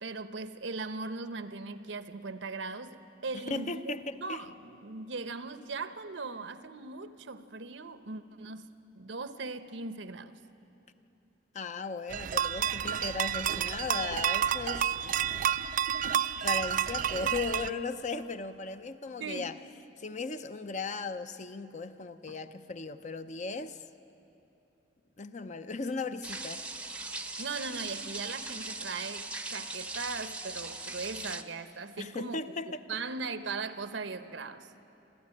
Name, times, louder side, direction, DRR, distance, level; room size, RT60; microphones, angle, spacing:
voice 1, 0.0-10.4 15.6-16.2 19.2-19.5 22.3-22.4 27.4-32.4 32.9-34.7, right 4 dB, 80° right, 11 dB, 0.9 m, -39 dB
voice 2, 3.3-4.4 11.5-15.5 16.4-19.5 20.0-23.8 25.2-26.6 32.0-32.8, left 4 dB, 40° left, 10 dB, 0.7 m, -37 dB
sound 1, 12.1-17.7, right 9 dB, 45° right, 0.4 m, -30 dB
sound 2, 26.2-31.4, right 2 dB, 5° right, 0.7 m, -39 dB
26.5 x 14.0 x 9.8 m, 2.9 s
head